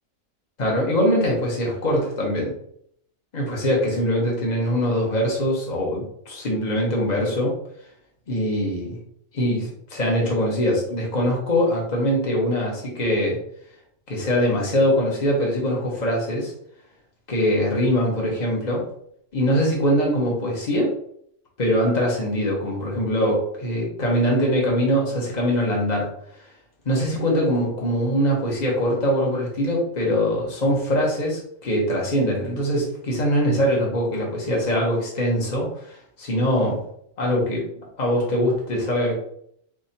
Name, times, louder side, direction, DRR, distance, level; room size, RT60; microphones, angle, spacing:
voice 1, 0.6-2.5 3.3-7.5 8.3-9.0 9.3-13.4 14.1-16.5 17.3-18.9 19.3-20.9 21.6-26.1 26.8-36.8 37.2-37.6 38.0-39.1, equal, 35° left, -2 dB, 1.3 m, -22 dB
4.2 x 3.7 x 2.8 m, 0.68 s
omnidirectional pair, 1.4 m